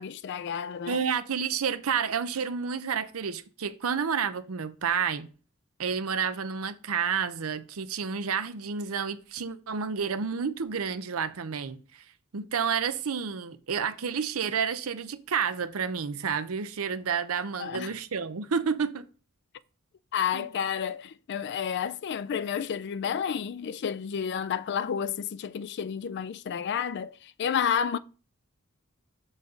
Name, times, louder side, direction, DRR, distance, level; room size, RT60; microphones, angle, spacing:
voice 1, 0.0-1.0 17.6-17.9 20.1-28.0, left 8 dB, 55° left, 0.3 m, -31 dB
voice 2, 0.9-5.3 5.8-12.0 12.3-19.1 20.3-20.5, right 6 dB, 85° right, 0.7 m, -30 dB
7.0 x 4.1 x 5.1 m
head